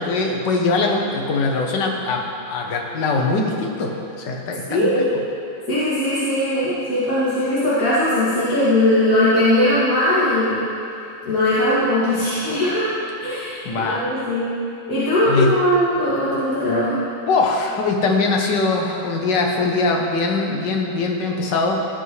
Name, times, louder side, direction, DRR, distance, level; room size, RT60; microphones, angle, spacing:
voice 1, 0.0-3.9 4.2-5.0 13.6-14.0 15.3-15.5 17.3-21.9, left 3 dB, 60° left, 1 dB, 1.6 m, -21 dB
voice 2, 4.7-5.1 5.7-10.6 11.2-12.9 13.2-14.5 14.9-17.0, left 1 dB, 40° left, -13 dB, 2.8 m, -19 dB
17.0 x 8.0 x 3.3 m, 2.8 s
omnidirectional pair, 2.3 m